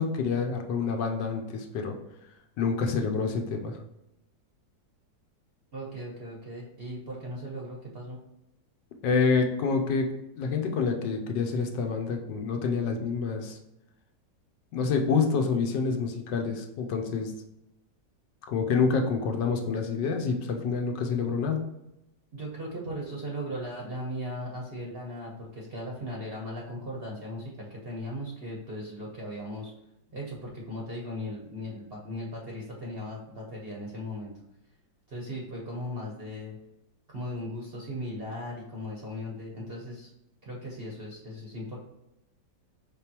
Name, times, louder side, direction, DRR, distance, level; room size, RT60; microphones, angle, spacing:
voice 1, 0.0-2.0 2.6-3.8 9.0-13.6 14.7-17.3 18.5-21.6, left 5 dB, 75° left, 4 dB, 1.3 m, -27 dB
voice 2, 5.7-8.2 22.3-29.7 30.1-34.3 35.1-36.6 37.1-40.1 40.4-41.8, equal, 45° right, -3 dB, 0.8 m, -37 dB
5.0 x 3.5 x 2.9 m, 0.89 s
omnidirectional pair, 2.0 m